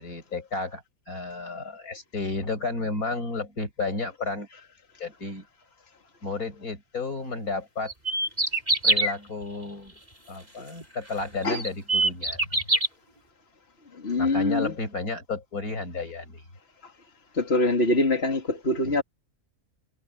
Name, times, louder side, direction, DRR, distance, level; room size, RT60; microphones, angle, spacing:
voice 1, 0.0-4.5 5.0-5.4 6.2-7.9 8.8-10.0 10.3-12.8 14.2-16.4 18.8-19.0, left 3 dB, 75° left, 6.3 m, -32 dB
sound 1, 7.9-9.1 10.8-10.9 11.5-12.9, right 2 dB, 25° right, 5.1 m, -23 dB
voice 2, 14.0-14.7 17.4-19.0, left 2 dB, 45° left, 2.8 m, -23 dB
omnidirectional pair, 1.5 m